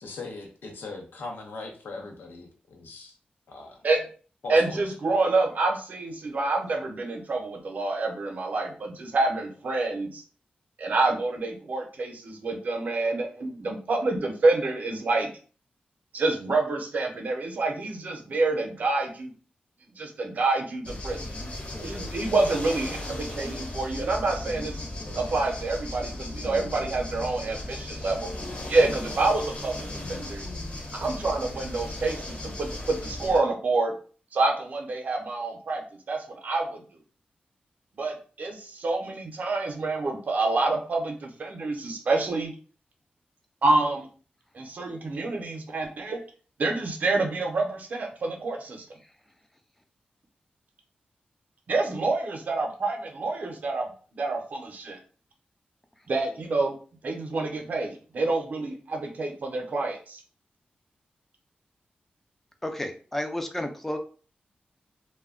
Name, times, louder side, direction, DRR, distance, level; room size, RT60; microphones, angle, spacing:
voice 1, 0.0-3.2 3.5-3.8 4.4-4.8, left 3 dB, 85° left, 2 dB, 0.7 m, -40 dB
voice 2, 4.5-10.2 10.8-15.3 16.1-19.3 20.0-21.3 21.8-24.8 25.2-28.3 28.7-30.4 30.9-33.9 34.3-35.8 36.1-36.8 38.0-42.5 43.6-44.1 44.5-46.2 46.6-48.8 51.7-55.0 56.1-56.7 57.0-60.2, right 3 dB, 55° right, 2 dB, 0.6 m, -27 dB
sound 1, 20.8-33.4, left 1 dB, 40° left, 0.8 m, -36 dB
voice 3, 62.6-64.0, left 1 dB, 10° left, 5 dB, 0.3 m, -32 dB
2.2 x 2.1 x 3.5 m, 0.39 s
wide cardioid pair, 175°, 3 cm